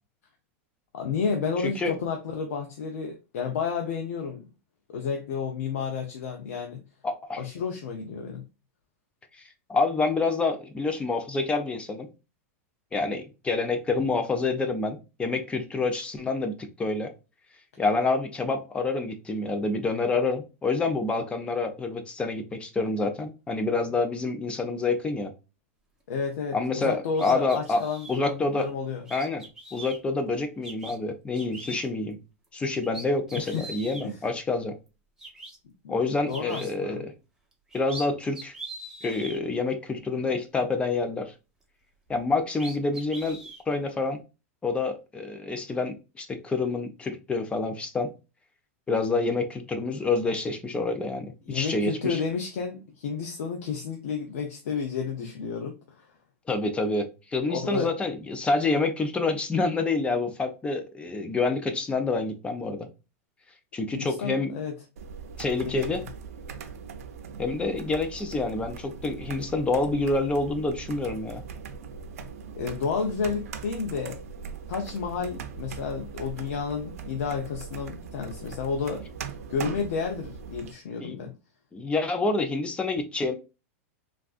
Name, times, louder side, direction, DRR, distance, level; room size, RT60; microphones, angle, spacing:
voice 1, 0.9-4.5 4.9-6.8 7.4-8.4 26.1-29.0 33.3-33.7 34.0-34.2 35.8-36.0 36.3-37.0 51.5-56.1 57.5-57.9 63.9-64.8 65.7-66.1 72.5-74.2 74.7-79.0 79.5-81.3, left 5 dB, 75° left, 0.6 m, -31 dB
voice 2, 7.0-7.4 9.7-12.1 12.9-17.1 17.8-25.3 26.5-27.8 28.1-28.7 29.1-29.4 29.7-32.2 32.5-34.7 35.9-37.1 37.7-38.5 39.0-41.3 42.1-44.2 44.6-48.1 48.9-52.2 56.5-62.9 63.7-64.5 65.4-66.0 67.4-71.4 81.0-81.2 81.7-83.3, left 3 dB, 15° left, 0.5 m, -27 dB
sound 1, 27.1-28.2 29.1-30.0 30.6-31.0 31.4-31.9 32.4-32.5 32.8-34.1 34.9-35.0 35.2-35.6 36.3-36.7 37.5-38.1 38.3-39.4 42.1-42.2 42.6-43.6, right 2 dB, 5° right, 0.8 m, -41 dB
sound 2, 65.0-80.7, right 6 dB, 85° right, 0.5 m, -40 dB
3.4 x 2.5 x 2.4 m
supercardioid pair, 130°, 8 cm